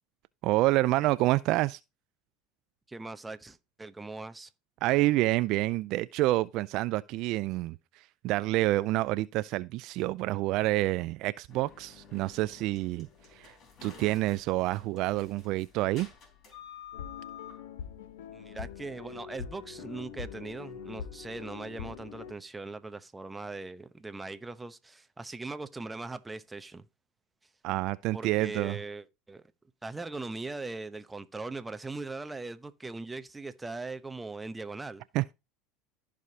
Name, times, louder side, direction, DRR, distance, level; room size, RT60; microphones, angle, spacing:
voice 1, 0.4-1.8 4.8-7.8 8.2-13.5 13.8-16.1 27.6-28.8 35.1-35.3, right 18 dB, 60° right, 0.3 m, -28 dB
voice 2, 2.9-4.5 18.3-26.8 28.1-29.4 29.8-35.0, right 3 dB, 15° right, 0.8 m, -40 dB
sound 1, 11.5-18.9, left 8 dB, 45° left, 3.9 m, -50 dB
sound 2, 16.9-22.3, left 8 dB, 85° left, 1.0 m, -43 dB
14.5 x 5.0 x 2.8 m
supercardioid pair, 95°, 0 cm